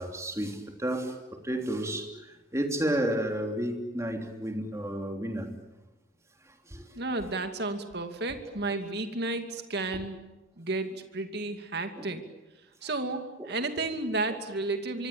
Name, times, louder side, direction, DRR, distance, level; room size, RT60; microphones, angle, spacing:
voice 1, 0.0-5.5 6.4-6.9 12.0-12.1 13.4-13.5 14.3-14.4, right 1 dB, 15° right, 4 dB, 3.2 m, -32 dB
voice 2, 7.0-10.2 10.6-12.2 12.8-15.1, right 2 dB, 55° right, 7 dB, 2.5 m, -32 dB
25.5 x 24.5 x 8.6 m, 1.0 s
head